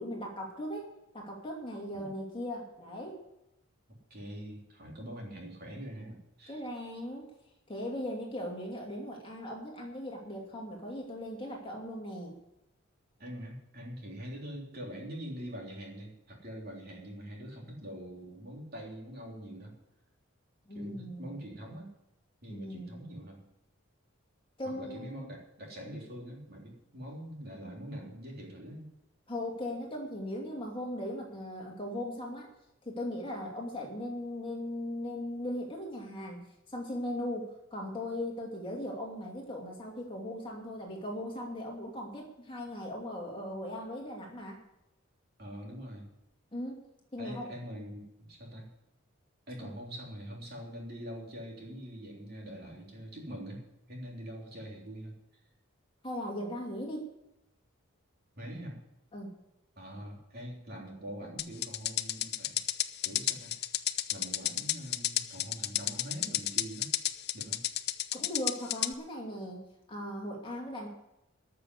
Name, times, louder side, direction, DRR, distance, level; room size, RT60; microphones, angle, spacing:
voice 1, 0.0-3.2 6.5-7.3 7.7-12.3 20.7-21.3 22.5-23.0 24.6-25.3 29.3-32.5 32.8-44.6 46.5-46.8 47.1-47.5 49.6-49.7 56.0-57.0 59.1-59.4 68.1-70.9, left 1 dB, 25° left, -1 dB, 2.6 m, -38 dB
voice 2, 4.1-6.6 13.2-19.7 20.7-21.9 22.4-23.4 24.8-28.9 45.4-46.1 47.2-48.7 49.5-53.6 53.9-55.1 58.4-58.8 59.8-62.6 63.0-63.5 64.1-66.9 67.3-67.6, equal, 45° right, -1 dB, 3.6 m, -44 dB
sound 1, 61.4-68.9, left 13 dB, 50° left, 0.6 m, -31 dB
13.0 x 6.8 x 9.7 m, 0.86 s
head